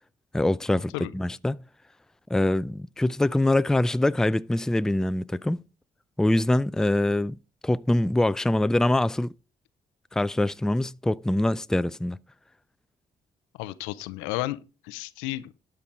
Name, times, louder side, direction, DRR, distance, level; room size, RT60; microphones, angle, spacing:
voice 1, 0.3-1.6 2.3-5.6 6.2-7.4 7.6-9.3 10.1-12.2, left 1 dB, 5° left, 0.4 m, -24 dB
voice 2, 13.6-15.5, left 17 dB, 85° left, 0.5 m, -33 dB
12.0 x 4.5 x 5.0 m
hypercardioid pair, 45°, 20 cm